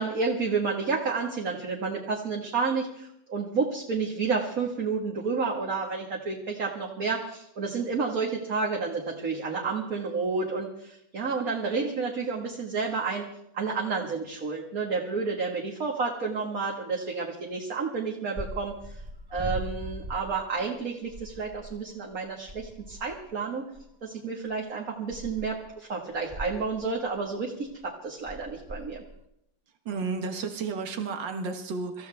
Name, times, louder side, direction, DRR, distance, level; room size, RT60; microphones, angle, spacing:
voice 1, 0.0-13.3 13.5-18.7 19.3-23.6 24.0-29.0, right 4 dB, 50° right, -1 dB, 2.2 m, -30 dB
sound 1, 18.4-20.8 21.1-21.8 22.1-22.2 22.5-23.3 23.8-23.9 24.5-24.6 25.1-25.7 26.1-27.2 27.7-27.9 28.3-29.2, right 1 dB, 20° right, 0.7 m, -40 dB
voice 2, 29.9-32.1, right 4 dB, 80° right, 5 dB, 2.1 m, -32 dB
26.5 x 14.5 x 3.5 m, 0.78 s
omnidirectional pair, 2.0 m